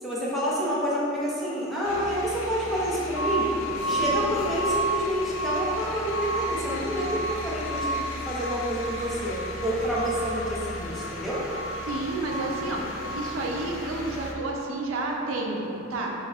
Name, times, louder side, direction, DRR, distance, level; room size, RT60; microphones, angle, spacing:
voice 1, 0.0-3.5 3.8-8.0 8.3-11.4, equal, ahead, -9 dB, 0.7 m, -28 dB
sound 1, 1.8-14.3, right 1 dB, 75° left, 0.5 m, -32 dB
voice 2, 11.9-16.1, right 2 dB, 85° right, -1 dB, 0.5 m, -30 dB
6.1 x 3.1 x 2.4 m, 2.9 s
head